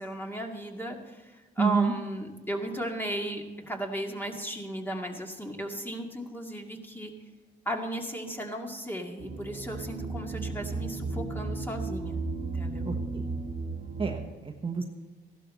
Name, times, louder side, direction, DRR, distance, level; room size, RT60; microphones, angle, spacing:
voice 1, 0.0-7.1 7.7-12.9, right 1 dB, 10° left, 1 dB, 2.1 m, -35 dB
voice 2, 1.6-1.9 12.8-13.3 14.0-14.8, right 4 dB, 25° right, 3 dB, 1.2 m, -28 dB
sound 1, 9.2-14.3, right 3 dB, 50° right, 1.5 m, -34 dB
15.5 x 12.0 x 4.3 m, 1.2 s
cardioid pair, 90°, 20 cm